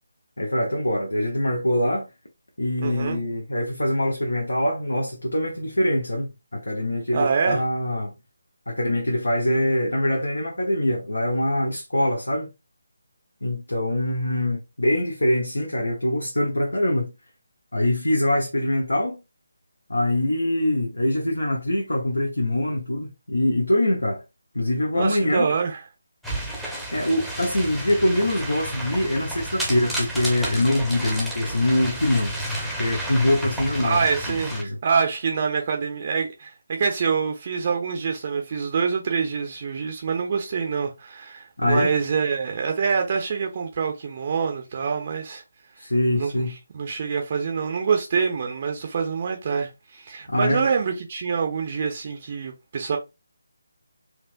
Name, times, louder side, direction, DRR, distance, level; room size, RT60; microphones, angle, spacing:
voice 1, 0.4-2.1 2.6-8.1 8.7-12.5 13.4-17.1 17.7-19.2 19.9-24.2 24.5-25.5 26.9-32.3 32.8-34.0 34.3-34.8 41.6-41.9 45.8-46.5 50.3-50.6, left 1 dB, 70° left, 1.0 m, -23 dB
voice 2, 2.8-3.2 7.1-7.6 24.9-25.8 33.8-45.4 46.2-46.4 46.7-53.0, right 5 dB, 35° right, 0.6 m, -25 dB
sound 1, 26.2-34.6, right 1 dB, ahead, 0.8 m, -31 dB
4.4 x 2.4 x 2.5 m
figure-of-eight pair, 150°, 0 cm